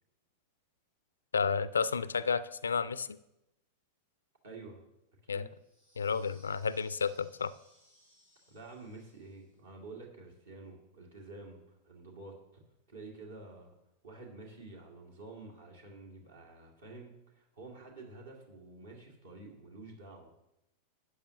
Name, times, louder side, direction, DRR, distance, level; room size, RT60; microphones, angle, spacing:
voice 1, 1.3-3.2 5.3-5.5 6.0-7.5, left 5 dB, 70° left, 17 dB, 0.3 m, -31 dB
voice 2, 4.4-4.8 5.3-5.5 8.5-12.6 12.9-13.7 14.0-20.3, right 3 dB, 65° right, 0 dB, 2.2 m, -49 dB
sound 1, 5.6-9.6, equal, 85° right, 4.1 m, -65 dB
12.5 x 8.5 x 2.9 m, 0.88 s
figure-of-eight pair, 90°, 0 cm